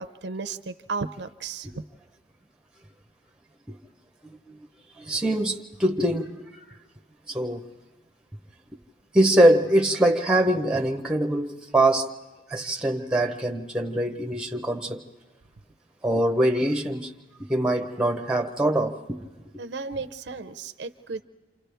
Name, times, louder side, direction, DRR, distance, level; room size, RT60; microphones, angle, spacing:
voice 1, 0.0-1.7 19.6-21.2, right 4 dB, 70° right, 0.6 m, -34 dB
voice 2, 5.0-6.4 7.3-7.7 9.1-12.1 12.5-15.0 16.0-17.1 17.5-19.0, right 1 dB, 5° right, 0.8 m, -23 dB
29.0 x 27.0 x 3.4 m
head